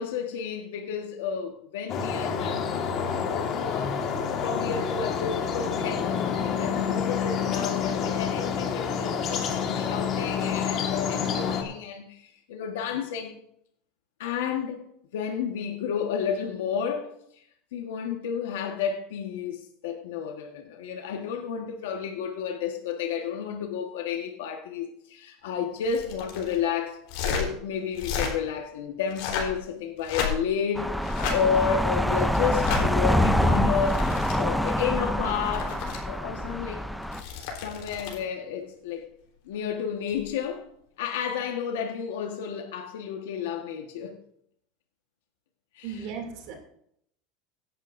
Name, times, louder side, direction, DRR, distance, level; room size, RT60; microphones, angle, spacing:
voice 1, 0.0-3.9 4.2-13.3 14.2-14.8 15.1-17.4 17.7-30.9 31.3-34.1 34.4-35.8 36.0-36.8 37.4-39.1 39.4-40.6 41.0-44.2 45.7-46.1, left 7 dB, 90° left, 1.4 m, -31 dB
sound 1, 1.9-11.6, left 7 dB, 35° left, 1.7 m, -28 dB
sound 2, 25.8-26.6 27.1-27.5 27.9-28.3 29.0-29.6 30.0-30.6 31.0-31.4 32.5-32.8 33.6-34.3 35.2-36.0 37.0-38.2 40.1-40.3, left 6 dB, 65° left, 3.8 m, -32 dB
sound 3, 30.7-37.2, equal, ahead, 0.5 m, -25 dB
voice 2, 45.8-46.5, right 6 dB, 60° right, 2.7 m, -36 dB
16.5 x 11.0 x 2.7 m
supercardioid pair, 155°, 0 cm